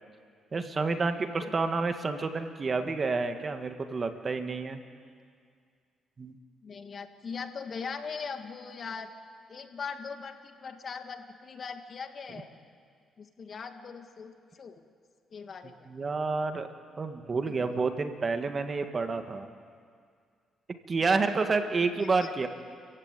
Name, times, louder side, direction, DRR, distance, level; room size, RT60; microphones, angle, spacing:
voice 1, 0.5-4.8 6.2-6.4 15.9-16.7 17.0-19.5 20.9-22.5, right 4 dB, 35° right, 7 dB, 1.7 m, -29 dB
voice 2, 6.6-9.1 9.5-12.5 13.2-14.8 15.3-15.9 17.5-17.8 21.0-21.3 22.2-22.5, left 5 dB, 45° left, 6 dB, 1.9 m, -40 dB
29.0 x 15.5 x 9.2 m, 2.1 s
cardioid pair, 90°, 0 cm